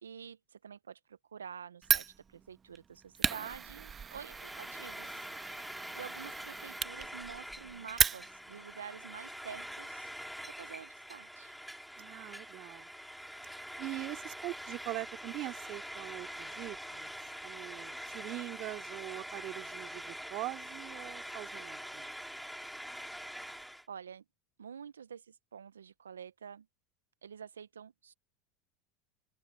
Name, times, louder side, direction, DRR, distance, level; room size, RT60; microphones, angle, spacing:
voice 1, 0.0-5.3 6.0-10.1 10.4-11.6 23.9-24.2 24.6-26.7 27.2-28.1, right 7 dB, 90° right, 0.4 m, -48 dB
Fire, 1.8-8.6, right 6 dB, 30° right, 0.9 m, -35 dB
Frying (food), 4.1-23.9, equal, ahead, 2.0 m, -45 dB
voice 2, 12.0-12.9 13.8-17.1 17.4-22.1, right 18 dB, 55° right, 2.4 m, -42 dB
open air
hypercardioid pair, 85°, 0 cm